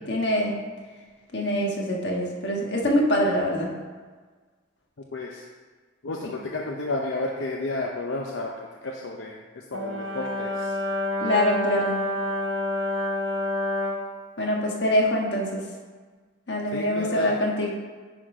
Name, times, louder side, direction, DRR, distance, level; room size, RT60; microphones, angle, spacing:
voice 1, 0.1-0.5 1.3-3.7 6.2-6.3 11.2-12.0 14.4-15.6 16.5-17.7, equal, 60° left, -1 dB, 1.5 m, -24 dB
voice 2, 5.1-5.4 6.0-10.8 16.7-17.3, left 2 dB, 80° left, 0 dB, 0.6 m, -32 dB
Brass instrument, 9.7-14.1, left 1 dB, 90° right, 1.0 m, -28 dB
9.9 x 3.8 x 5.0 m, 1.5 s
head